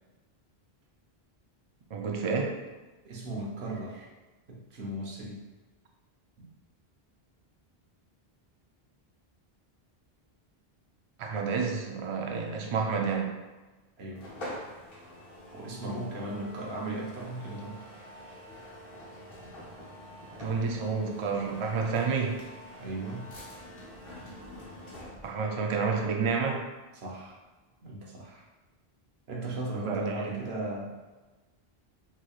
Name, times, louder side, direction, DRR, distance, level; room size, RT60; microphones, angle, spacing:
voice 1, 1.9-2.6 11.2-13.3 20.4-22.4 25.2-26.6 29.8-30.4, right 5 dB, 50° right, 1 dB, 0.4 m, -29 dB
voice 2, 3.0-4.1 4.5-5.4 6.4-6.5 14.0-14.2 15.5-17.8 22.8-23.3 26.9-27.4 27.8-28.5 29.3-31.0, right 2 dB, 80° right, -2 dB, 1.1 m, -37 dB
sound 1, 14.2-25.4, left 1 dB, 65° left, 1.1 m, -46 dB
3.9 x 3.1 x 2.3 m, 1.2 s
omnidirectional pair, 1.0 m